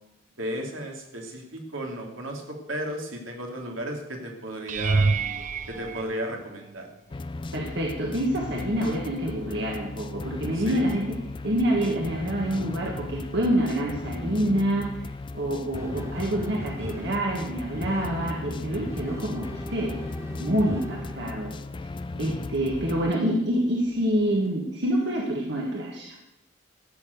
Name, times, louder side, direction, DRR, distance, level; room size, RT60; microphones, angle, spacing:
voice 1, 0.4-5.1 5.7-6.9 10.5-10.8, right 1 dB, 75° right, 1 dB, 2.7 m, -34 dB
sound 1, 4.7-7.0 7.7-8.1 8.5-8.6 13.0-13.1, right 3 dB, 35° right, 0.5 m, -28 dB
sound 2, 7.1-23.1, left 3 dB, 25° left, 0.4 m, -36 dB
voice 2, 7.5-11.1 11.4-14.9 15.3-20.0 20.4-21.5 22.2-26.2, right 1 dB, 55° right, -1 dB, 1.8 m, -27 dB
sound 3, 15.7-21.7 23.0-23.1 23.8-24.5, equal, 15° right, 0.8 m, -40 dB
14.0 x 6.9 x 8.0 m, 0.88 s
head